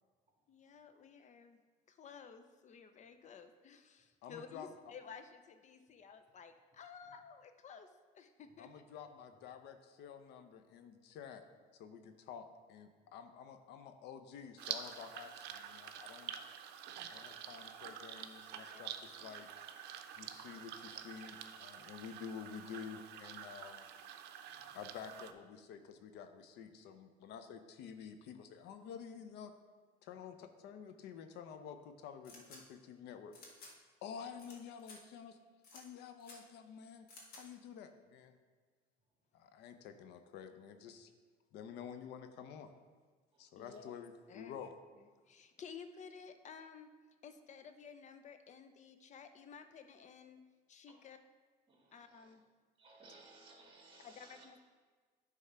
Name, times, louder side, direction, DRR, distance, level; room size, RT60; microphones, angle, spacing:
voice 1, 0.5-1.6 1.9-8.7 18.7-18.8 19.2-19.4 43.6-43.8 44.3-44.6 45.0-46.9 47.2-50.4 50.7-51.2 51.9-52.4 54.0-54.6, left 6 dB, 45° left, 9 dB, 0.7 m, -54 dB
voice 2, 4.2-4.7 8.6-11.4 11.7-16.3 17.1-19.5 20.2-23.9 24.7-29.5 30.0-33.4 34.0-35.4 35.7-37.1 37.3-38.4 39.3-41.1 41.5-42.7 43.4-44.7, left 7 dB, 85° left, 8 dB, 0.7 m, -50 dB
sound 1, 14.6-25.3, right 9 dB, 80° right, 0.6 m, -48 dB
voice 3, 16.9-17.5 20.1-20.7 24.5-24.8 43.3-43.8 50.9-51.0 51.7-52.3 52.8-54.5, right 3 dB, 30° right, -1 dB, 2.1 m, -62 dB
sound 2, 32.2-32.6 33.3-33.7 34.4-34.5 34.8-35.0 35.6-35.8 36.2-36.4 37.1-37.4, left 3 dB, 65° left, 1.9 m, -54 dB
9.8 x 3.6 x 5.6 m, 1.4 s
cardioid pair, 110°, 17 cm